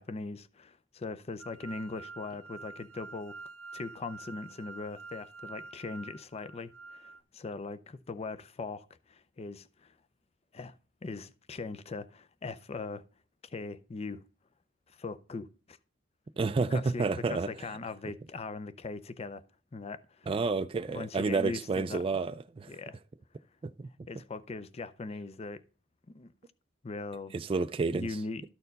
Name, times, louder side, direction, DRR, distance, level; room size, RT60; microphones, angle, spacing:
voice 1, 0.0-3.4 3.7-10.0 10.5-13.0 13.4-14.2 14.9-15.8 16.7-19.4 19.7-20.3 20.9-22.2 22.7-23.0 24.1-25.6 26.1-26.3 26.8-27.3 27.9-28.5, left 3 dB, 30° left, 0.5 m, -40 dB
sound 1, 1.4-7.2, right 4 dB, 90° right, 0.6 m, -47 dB
voice 2, 16.4-17.5 20.3-22.7 23.6-23.9 27.3-28.1, right 4 dB, 30° right, 0.3 m, -30 dB
13.0 x 4.4 x 3.9 m
head